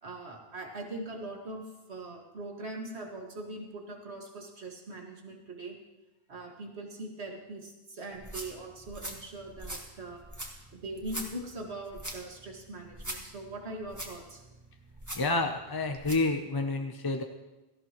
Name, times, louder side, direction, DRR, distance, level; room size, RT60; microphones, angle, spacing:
voice 1, 0.0-5.7 6.3-10.2 10.7-14.4, right 2 dB, 90° right, 1 dB, 2.2 m, -41 dB
sound 1, 8.1-16.3, right 1 dB, 15° right, 1.6 m, -43 dB
voice 2, 15.1-17.2, left 2 dB, 30° left, 5 dB, 0.5 m, -29 dB
17.5 x 14.5 x 3.0 m, 1.1 s
omnidirectional pair, 1.1 m